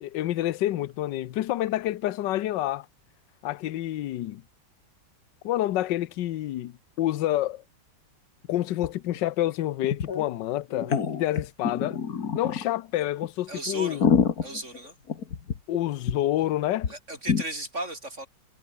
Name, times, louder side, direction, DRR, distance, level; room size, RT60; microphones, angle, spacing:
voice 1, 0.0-2.9 3.4-4.4 5.4-7.6 8.5-12.0 12.3-14.0 15.7-16.9, left 14 dB, 80° left, 1.4 m, -28 dB
sound 1, 8.8-8.9 9.2-9.3 9.8-10.2 10.7-12.7 13.2-13.3 13.7-15.8 16.1-16.2 16.4-16.5 16.8-16.9 17.3-17.4, left 6 dB, 55° left, 2.1 m, -26 dB
voice 2, 13.5-14.0 14.4-14.9 16.9-18.3, right 1 dB, 40° right, 6.5 m, -35 dB
omnidirectional pair, 1.9 m